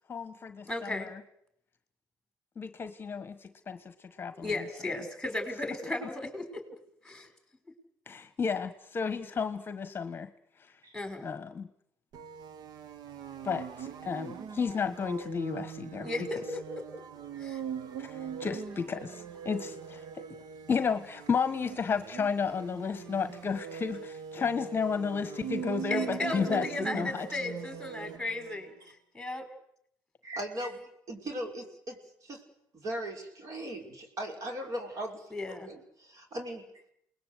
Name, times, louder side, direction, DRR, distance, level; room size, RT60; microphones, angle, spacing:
voice 1, 0.1-1.2 2.6-4.5 8.1-10.3 11.2-11.7 13.4-16.1 18.0-20.2 20.7-27.3, left 6 dB, 30° left, 11 dB, 1.4 m, -33 dB
voice 2, 0.7-1.1 4.3-6.6 7.0-7.3 10.9-11.3 16.0-16.8 17.4-17.6 25.9-29.5 35.3-35.7, left 2 dB, 5° left, 7 dB, 5.6 m, -35 dB
sound 1, 12.1-28.7, right 7 dB, 65° right, 1.5 m, -41 dB
voice 3, 30.2-32.4 32.7-35.3 35.7-36.6, right 1 dB, 45° right, 3 dB, 5.6 m, -38 dB
28.5 x 20.5 x 8.2 m, 0.74 s
cardioid pair, 110°, 7 cm